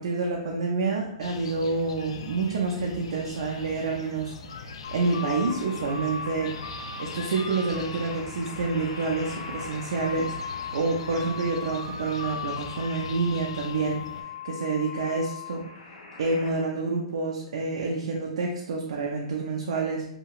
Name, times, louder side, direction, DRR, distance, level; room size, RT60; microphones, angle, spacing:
voice 1, 0.0-6.5 7.0-15.6 16.2-20.0, right 3 dB, 65° right, -1 dB, 0.4 m, -28 dB
sound 1, 1.2-14.2, left 4 dB, 60° left, 0.3 m, -42 dB
sound 2, 4.8-16.5, left 5 dB, 80° left, 0.7 m, -38 dB
2.9 x 2.7 x 2.3 m, 0.76 s
hypercardioid pair, 175°, 3 cm